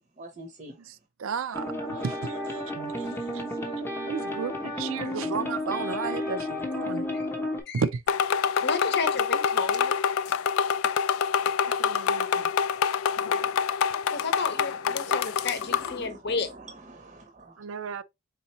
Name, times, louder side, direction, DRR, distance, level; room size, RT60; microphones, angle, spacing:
voice 1, 0.2-0.7 5.0-5.1 11.6-11.8 13.3-13.6 14.1-17.6, right 2 dB, 35° right, 0.7 m, -46 dB
voice 2, 0.8-3.7 4.1-7.1 7.7-8.0 11.7-12.5 17.6-18.0, right 5 dB, 80° right, 0.5 m, -34 dB
sound 1, 1.5-7.6, left 1 dB, 10° left, 0.8 m, -32 dB
sound 2, 8.1-16.0, left 7 dB, 90° left, 0.3 m, -26 dB
voice 3, 8.6-9.9 14.1-16.5, left 4 dB, 55° left, 0.8 m, -32 dB
4.2 x 3.7 x 2.9 m
head